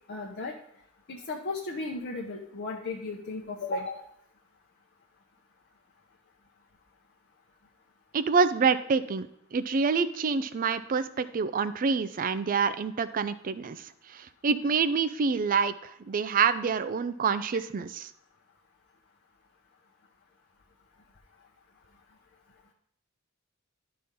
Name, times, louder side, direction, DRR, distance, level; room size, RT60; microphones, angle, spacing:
voice 1, 0.1-0.5 1.1-4.0, left 3 dB, 50° left, -1 dB, 0.8 m, -35 dB
voice 2, 8.1-18.1, right 5 dB, 40° right, 14 dB, 0.4 m, -27 dB
11.5 x 4.3 x 3.7 m, 0.69 s
head